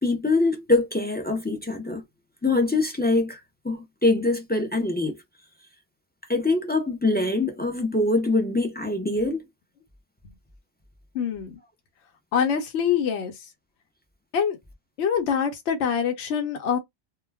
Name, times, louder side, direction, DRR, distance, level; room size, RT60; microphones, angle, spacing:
voice 1, 0.0-2.0 2.4-3.4 3.6-5.2 6.3-9.4, left 2 dB, 15° left, 0.4 m, -23 dB
voice 2, 11.1-11.5 12.3-13.3 14.3-14.6 15.0-16.8, left 7 dB, 80° left, 0.9 m, -24 dB
2.2 x 2.2 x 3.3 m
omnidirectional pair, 1.2 m